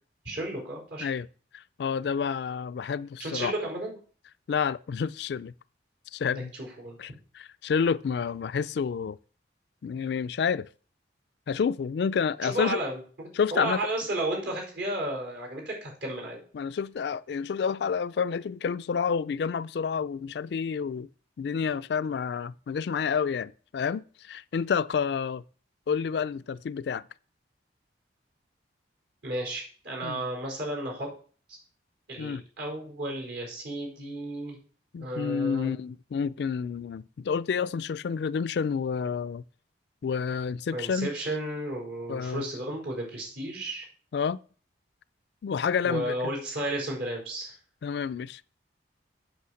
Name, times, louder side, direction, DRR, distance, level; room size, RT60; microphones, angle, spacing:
voice 1, 0.2-1.1 3.2-4.0 6.5-7.0 12.4-13.0 13.5-16.4 29.2-31.1 31.5-31.6 32.1-34.6 35.0-35.7 40.7-43.9 45.8-47.5, right 1 dB, 70° right, 4.9 m, -33 dB
voice 2, 1.5-3.5 4.5-5.5 6.1-6.5 7.0-9.2 9.8-10.7 11.5-12.8 13.4-13.8 16.5-21.1 21.4-25.4 25.9-27.0 30.0-30.2 32.2-32.4 34.9-39.4 40.0-41.1 42.1-42.4 44.1-44.4 45.4-46.3 47.8-48.4, left 6 dB, 60° left, 0.3 m, -29 dB
8.4 x 6.2 x 6.4 m
head